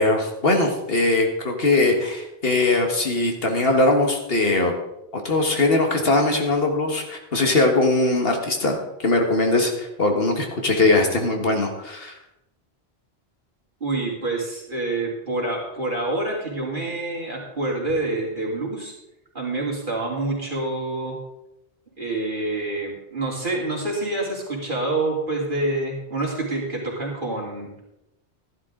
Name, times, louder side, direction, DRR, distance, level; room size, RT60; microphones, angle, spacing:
voice 1, 0.0-4.7 5.1-12.1, left 2 dB, 60° left, 3 dB, 1.8 m, -21 dB
voice 2, 13.8-18.9 19.3-21.2 22.0-27.7, right 2 dB, 50° right, -3 dB, 3.3 m, -27 dB
13.0 x 11.5 x 3.8 m, 0.88 s
omnidirectional pair, 1.1 m